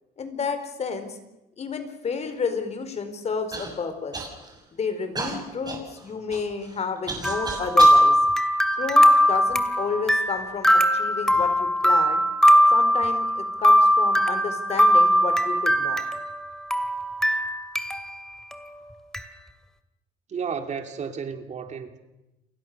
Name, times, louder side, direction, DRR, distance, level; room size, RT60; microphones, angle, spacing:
voice 1, 0.2-1.2 1.6-4.2 4.7-8.2 8.8-12.2 12.7-16.0, left 5 dB, 40° left, 4.3 m, -31 dB
Human voice / Cough, 3.5-3.7 4.1-4.6 5.2-8.0 8.7-9.6 10.3-10.4 11.1-11.5, right 3 dB, 25° right, 6.8 m, -35 dB
sound 1, 7.2-16.5 16.7-18.2 18.5-18.6 19.1-19.2, equal, 5° left, 2.4 m, -20 dB
voice 2, 20.3-22.0, right 6 dB, 45° right, 2.8 m, -32 dB
30.0 x 23.5 x 6.7 m
cardioid pair, 110°, 17 cm